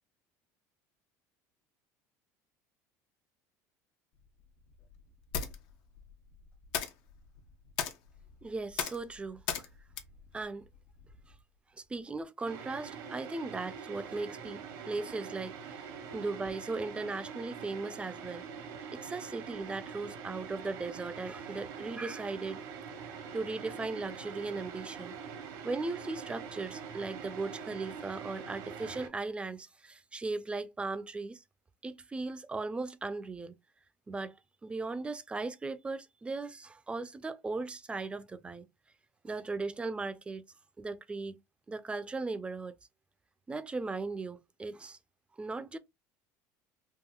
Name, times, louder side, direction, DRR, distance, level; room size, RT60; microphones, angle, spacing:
sound 1, 4.2-11.4, left 8 dB, 70° left, 0.7 m, -40 dB
voice 1, 8.4-9.7 10.3-10.7 11.8-18.4 18.9-22.6 23.3-25.2 25.6-31.4 31.8-33.5 34.1-34.3 34.6-38.7 39.2-40.4 40.8-41.4 41.7-42.7 43.5-45.0 45.4-45.8, right 3 dB, 15° right, 0.4 m, -38 dB
sound 2, 12.4-29.1, right 6 dB, 70° right, 0.9 m, -44 dB
3.6 x 2.7 x 2.2 m
supercardioid pair, 115°, 7 cm